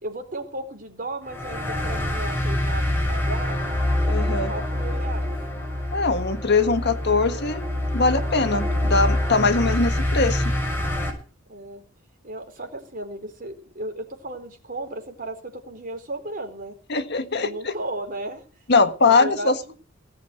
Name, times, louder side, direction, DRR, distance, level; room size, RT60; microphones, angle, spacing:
voice 1, 0.0-3.6 4.2-5.3 11.5-11.8 12.2-16.7 17.4-18.4 19.1-19.7, right 2 dB, 45° right, 5 dB, 4.4 m, -35 dB
sound 1, 1.2-11.1, left 1 dB, 10° left, 6.2 m, -25 dB
voice 2, 4.1-4.5 5.9-10.5 16.9-17.7 18.7-19.7, left 3 dB, 55° left, 9 dB, 1.6 m, -22 dB
18.5 x 7.4 x 7.9 m, 0.38 s
head